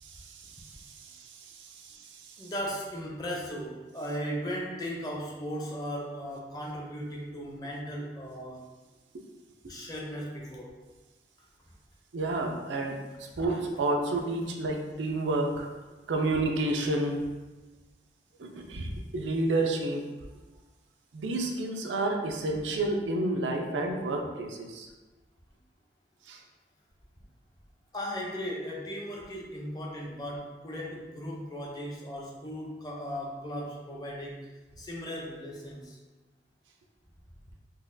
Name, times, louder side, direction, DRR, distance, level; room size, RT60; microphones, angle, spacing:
voice 1, 0.0-2.4 12.1-15.7 16.1-17.2 18.4-20.0 21.1-24.9 26.3-26.4, right 2 dB, 90° right, 2 dB, 0.4 m, -30 dB
voice 2, 2.4-8.6 9.7-10.8 13.3-13.4 27.9-34.5 34.8-36.0, equal, 20° left, -3 dB, 0.5 m, -37 dB
3.9 x 2.3 x 2.5 m, 1.2 s
head